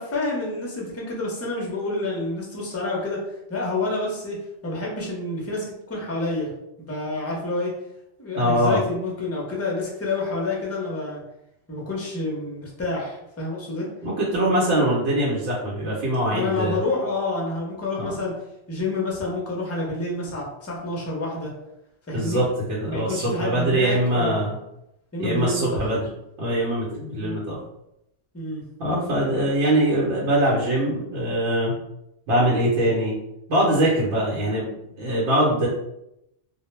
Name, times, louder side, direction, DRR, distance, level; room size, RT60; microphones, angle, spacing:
voice 1, 0.0-3.2 3.5-6.5 6.8-7.7 8.2-11.2 11.7-13.9 16.3-18.3 18.7-21.5 22.1-22.4 22.9-24.5 25.1-25.8 27.2-27.4 28.3-28.6, left 2 dB, 20° left, -3 dB, 0.4 m, -28 dB
voice 2, 8.4-8.8 14.0-16.8 18.0-18.2 22.1-24.6 25.2-26.0 26.4-27.6 28.8-31.8 32.3-33.2 33.5-34.7 35.0-35.7, right 1 dB, 85° right, -7 dB, 1.0 m, -22 dB
2.2 x 2.1 x 3.0 m, 0.83 s
omnidirectional pair, 1.2 m